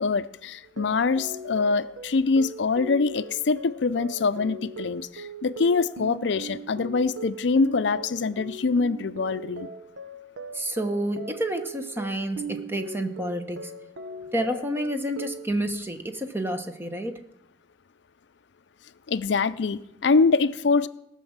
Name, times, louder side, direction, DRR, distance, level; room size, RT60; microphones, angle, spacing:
voice 1, 0.0-9.7 19.1-20.9, left 4 dB, 65° left, 14 dB, 0.5 m, -24 dB
sound 1, 0.6-15.5, right 1 dB, 85° right, 0.9 m, -39 dB
voice 2, 10.5-13.7 14.3-17.2, right 1 dB, 10° right, 7 dB, 0.9 m, -29 dB
18.5 x 6.2 x 7.2 m, 0.83 s
head